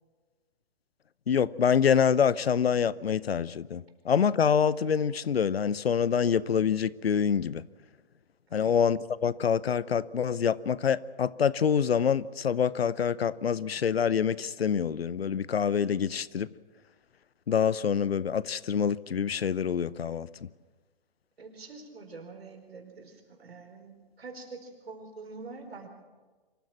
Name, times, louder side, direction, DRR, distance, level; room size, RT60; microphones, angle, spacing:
voice 1, 1.3-7.6 8.5-16.5 17.5-20.3, left 7 dB, 85° left, 0.8 m, -26 dB
voice 2, 21.4-25.9, right 4 dB, 80° right, 4.6 m, -45 dB
25.0 x 14.5 x 7.4 m
hypercardioid pair, 130°, 30 cm